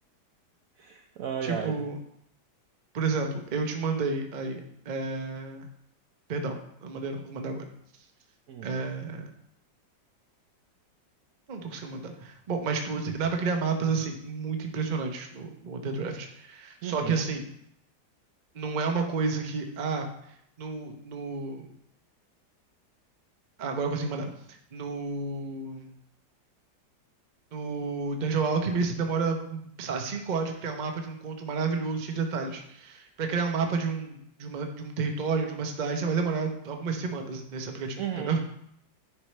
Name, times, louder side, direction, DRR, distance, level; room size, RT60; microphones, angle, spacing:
voice 1, 0.8-1.8 8.5-8.8 16.8-17.2 38.0-38.4, right 8 dB, 75° right, 4 dB, 0.8 m, -34 dB
voice 2, 1.4-2.0 2.9-5.7 6.3-7.6 8.6-9.3 11.5-17.5 18.5-20.1 20.6-21.6 23.6-26.0 27.5-38.4, right 4 dB, 45° right, 4 dB, 0.6 m, -31 dB
10.5 x 4.7 x 3.2 m, 0.71 s
omnidirectional pair, 2.0 m